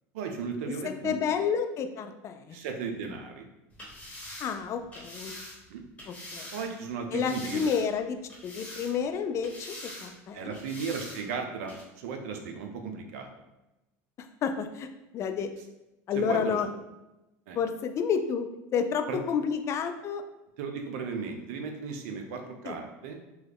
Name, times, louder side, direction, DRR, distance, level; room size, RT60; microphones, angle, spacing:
voice 1, 0.1-1.2 2.5-3.4 5.7-5.8 6.5-7.6 10.3-13.3 16.2-16.6 17.5-17.6 19.1-19.2 20.6-23.2, right 5 dB, 80° right, 4 dB, 0.5 m, -35 dB
voice 2, 0.8-2.6 4.4-5.3 6.1-6.5 7.1-10.6 14.2-14.9 15.1-15.5 16.1-16.7 17.5-20.2 22.6-22.7, left 6 dB, 35° left, 7 dB, 0.3 m, -30 dB
sound 1, 3.7-6.7 7.1-8.0 8.3-9.1 9.4-10.1 10.5-11.2 11.7-11.8, left 1 dB, 15° left, 1.1 m, -44 dB
3.0 x 2.3 x 3.4 m, 0.99 s
supercardioid pair, 115°, 8 cm